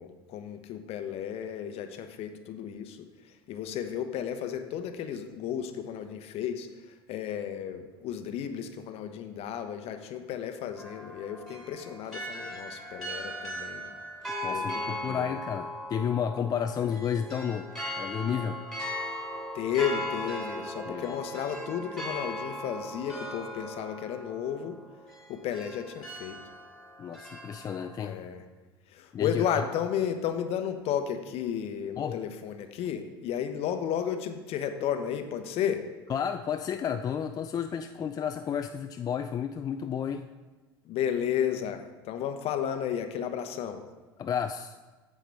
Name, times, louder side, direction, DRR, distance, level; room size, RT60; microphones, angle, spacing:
voice 1, 0.0-13.9 14.5-15.4 16.8-16.9 19.5-24.8 25.3-26.4 28.0-28.4 28.9-35.8 40.8-43.8, left 9 dB, 50° left, 8 dB, 0.9 m, -33 dB
sound 1, 10.8-28.1, equal, 5° left, 2.7 m, -38 dB
voice 2, 14.4-17.7 18.0-18.6 20.9-21.2 27.0-28.2 29.1-29.4 32.0-32.2 36.1-40.3 44.2-44.8, left 8 dB, 30° left, 8 dB, 0.4 m, -31 dB
8.7 x 7.5 x 3.5 m, 1.3 s
hypercardioid pair, 75°, 13 cm